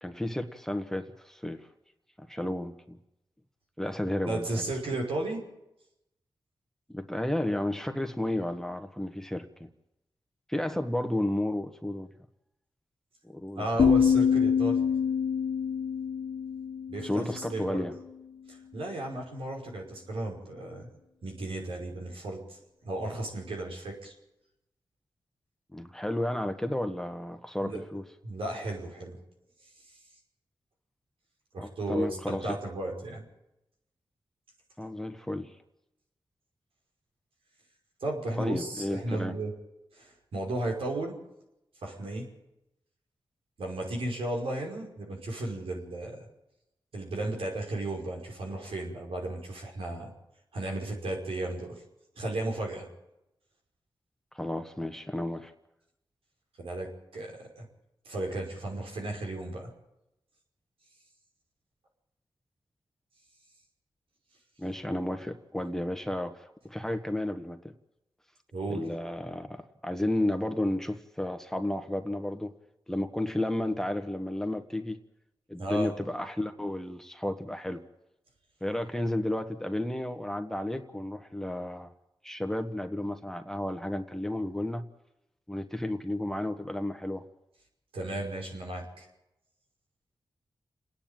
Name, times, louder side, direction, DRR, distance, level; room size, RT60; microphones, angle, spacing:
voice 1, 0.0-1.7 2.2-3.0 3.8-4.6 6.9-9.7 10.5-12.1 13.3-13.7 17.0-17.9 25.7-28.0 31.6-32.6 34.8-35.5 38.4-39.3 54.3-55.5 64.6-67.6 68.7-72.5 72.9-75.0 75.5-77.8 78.6-81.9 82.2-84.8 85.5-87.2, left 1 dB, 5° left, 7 dB, 1.5 m, -32 dB
voice 2, 4.3-5.4 13.6-14.8 16.9-17.9 18.5-20.9 21.2-22.6 22.8-24.1 27.6-27.8 28.2-29.2 31.5-33.2 38.0-39.5 39.9-41.2 41.8-42.3 43.6-46.3 46.9-50.1 50.5-51.7 52.2-52.9 56.6-57.7 58.1-59.7 68.5-68.9 75.6-75.9 87.9-89.1, right 2 dB, 90° right, 0 dB, 5.6 m, -34 dB
sound 1, 13.8-17.7, left 7 dB, 80° left, 1.0 m, -26 dB
29.5 x 10.0 x 9.1 m, 0.88 s
cardioid pair, 60°, 9 cm